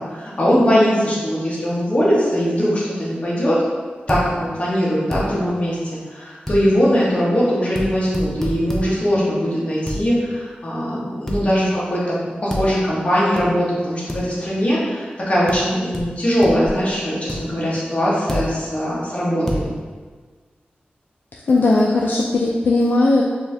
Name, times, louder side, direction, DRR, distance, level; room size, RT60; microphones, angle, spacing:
voice 1, 0.0-3.6 4.1-12.2 12.4-19.7, equal, 35° left, -7 dB, 1.2 m, -20 dB
sound 1, 4.1-4.3 5.1-5.3 6.5-6.6 7.8-7.9 8.1-8.9 9.9-10.0 11.3-11.4 12.5-12.7 13.4-13.5 14.1-14.2 15.5-15.6 15.9-16.1 16.4-16.7 17.3-17.4 18.3-18.5 19.5-19.6, equal, 10° left, 0.5 m, -26 dB
voice 2, 21.5-23.2, left 2 dB, 65° left, -3 dB, 0.4 m, -17 dB
4.2 x 2.7 x 3.3 m, 1.5 s
wide cardioid pair, 120°, 4 cm